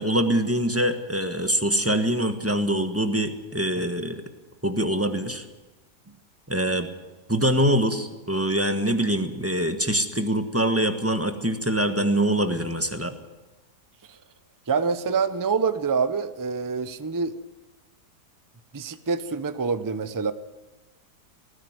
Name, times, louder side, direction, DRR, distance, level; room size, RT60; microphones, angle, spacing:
voice 1, 0.0-4.2 4.6-5.4 6.5-6.9 7.3-13.1, right 1 dB, 10° right, 7 dB, 1.3 m, -24 dB
voice 2, 14.7-17.4 18.7-20.3, right 5 dB, 30° right, 12 dB, 0.3 m, -26 dB
19.0 x 15.5 x 9.5 m, 1.1 s
omnidirectional pair, 1.8 m